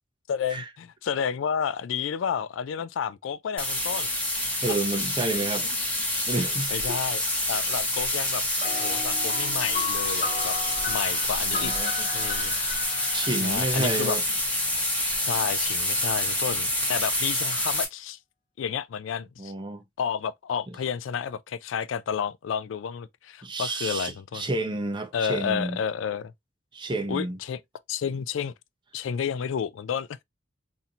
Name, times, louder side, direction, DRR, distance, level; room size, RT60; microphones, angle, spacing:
voice 1, 0.3-4.1 6.7-7.2 7.5-8.4 8.8-10.6 10.9-11.7 12.1-12.5 13.3-14.2 15.2-18.2 18.6-19.5 20.0-24.5 25.1-26.3 27.1-27.6 27.9-28.5 28.9-30.2, left 7 dB, 75° left, 0.3 m, -31 dB
sound 1, 3.6-17.8, left 1 dB, 5° left, 1.1 m, -27 dB
voice 2, 4.6-5.7 6.3-7.0 11.5-12.1 13.1-14.2 15.6-15.7 19.4-19.8 23.4-25.8 26.7-27.4, right 2 dB, 25° right, 0.7 m, -30 dB
sound 2, 8.6-14.4, left 5 dB, 40° left, 0.8 m, -36 dB
4.1 x 2.7 x 2.7 m
head